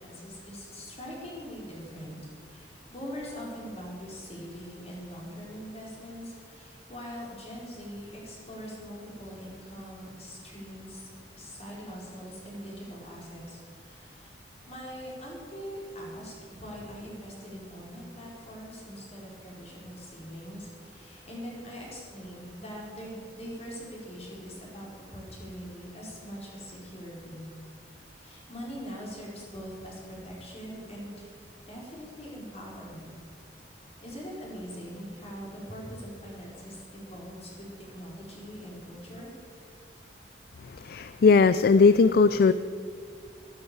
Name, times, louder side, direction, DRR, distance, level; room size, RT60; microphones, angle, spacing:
voice 1, 0.0-2.2 2.5-11.1 11.4-14.3 14.7-27.5 28.2-31.3 31.7-33.1 34.0-39.3, equal, 35° left, -3 dB, 4.9 m, -42 dB
voice 2, 40.8-42.5, left 4 dB, 55° left, 13 dB, 0.4 m, -19 dB
13.5 x 13.0 x 7.0 m, 2.1 s
head